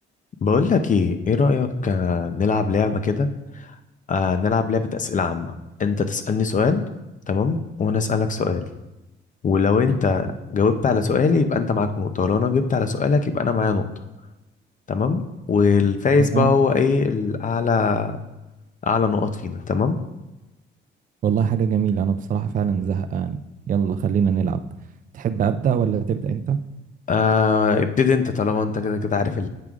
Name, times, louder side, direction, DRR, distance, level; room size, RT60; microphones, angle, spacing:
voice 1, 0.4-3.3 3.5-3.7 4.1-5.5 5.8-6.8 7.3-8.6 9.4-13.9 14.9-18.2 18.8-20.0 27.1-29.5, left 5 dB, 40° left, 9 dB, 0.6 m, -21 dB
voice 2, 16.2-16.6 21.2-23.4 23.7-24.6 25.1-26.6, right 7 dB, 40° right, 9 dB, 0.4 m, -22 dB
7.6 x 4.8 x 3.6 m, 1.0 s
cardioid pair, 90°, 20 cm